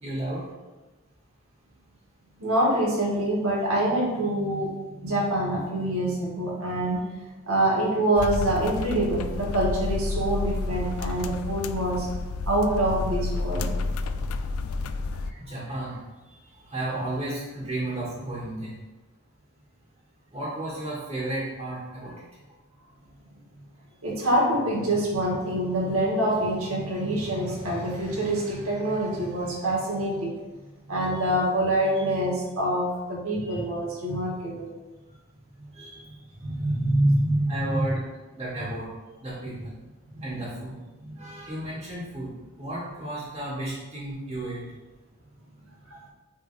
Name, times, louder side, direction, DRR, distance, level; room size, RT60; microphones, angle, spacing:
voice 1, 0.0-0.4 15.1-16.0 16.3-18.7 20.3-22.3 35.7-36.1 37.5-38.0 38.3-38.9 39.2-39.8 40.2-40.8 41.2-42.3 42.6-44.6, right 1 dB, 25° right, -9 dB, 1.5 m, -33 dB
voice 2, 2.4-7.0 7.5-12.1 12.5-13.7 24.0-30.3 30.9-34.7 36.4-37.8 40.1-40.4 41.0-41.2 45.9-46.0, right 1 dB, 85° right, -4 dB, 2.0 m, -25 dB
sound 1, 8.2-15.3, left 3 dB, 85° left, 0.4 m, -30 dB
8.4 x 3.6 x 3.2 m, 1.2 s
head